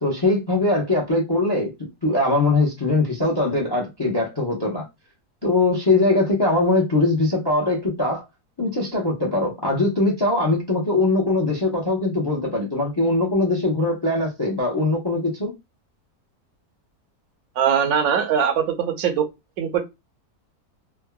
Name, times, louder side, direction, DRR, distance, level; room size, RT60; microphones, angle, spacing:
voice 1, 0.0-1.7 2.0-4.8 5.4-8.2 8.6-15.5, left 2 dB, 30° left, 0.5 m, -21 dB
voice 2, 17.6-19.2 19.6-19.8, right 8 dB, 70° right, 1.1 m, -21 dB
3.5 x 2.1 x 2.2 m
omnidirectional pair, 1.6 m